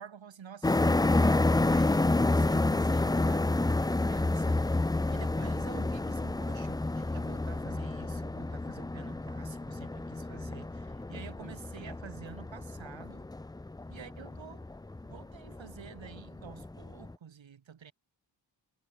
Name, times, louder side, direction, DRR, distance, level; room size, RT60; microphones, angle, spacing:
voice 1, 0.0-4.8 5.1-13.3 13.9-14.7 15.1-17.9, right 7 dB, 75° right, 3.5 m, -49 dB
sound 1, 0.6-17.1, left 2 dB, 10° left, 0.4 m, -29 dB
wide cardioid pair, 160°, 46 cm